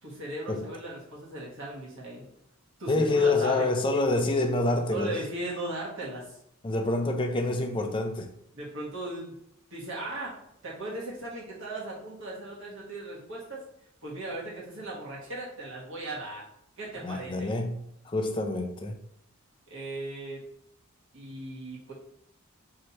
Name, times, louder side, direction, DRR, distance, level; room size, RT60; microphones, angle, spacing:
voice 1, 0.0-2.2 2.8-3.7 4.9-6.4 8.5-9.4 9.7-10.3 10.6-13.6 14.0-16.5 16.8-17.5 19.7-20.4 21.1-21.9, right 2 dB, 60° right, 1.3 m, -37 dB
voice 2, 2.9-5.2 6.6-8.3 17.0-19.0, left 2 dB, 20° left, 0.4 m, -27 dB
3.2 x 2.7 x 4.1 m
head